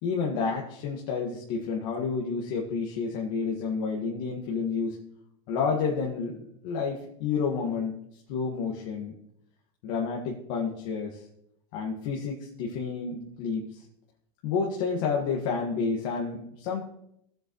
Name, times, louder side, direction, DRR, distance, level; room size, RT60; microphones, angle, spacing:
voice 1, 0.0-5.0 5.5-8.0 8.3-9.1 9.8-11.2 11.7-13.8 14.4-16.8, left 5 dB, 60° left, -2 dB, 1.7 m, -30 dB
15.5 x 7.7 x 3.1 m, 0.75 s
supercardioid pair, 120°, 18 cm